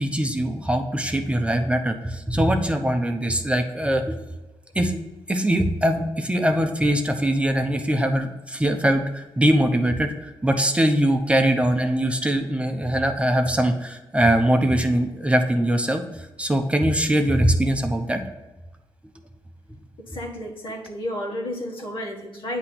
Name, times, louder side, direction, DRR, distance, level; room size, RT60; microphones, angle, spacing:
voice 1, 0.0-4.1 4.7-5.0 5.3-18.2, right 1 dB, 15° right, 5 dB, 0.7 m, -22 dB
voice 2, 20.0-22.6, left 1 dB, 70° left, -1 dB, 1.3 m, -32 dB
8.2 x 3.0 x 5.9 m, 1.0 s
cardioid pair, 70°, 9 cm